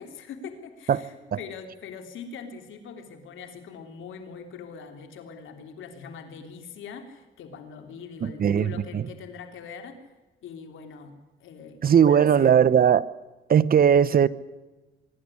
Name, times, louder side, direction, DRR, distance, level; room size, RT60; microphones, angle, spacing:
voice 1, 0.0-10.0 10.4-11.1 11.4-12.5, left 6 dB, 80° left, 3.4 m, -42 dB
voice 2, 8.2-9.0 11.8-13.1 13.5-14.3, right 8 dB, 50° right, 0.9 m, -19 dB
24.5 x 12.0 x 9.9 m
cardioid pair, 90°, 20 cm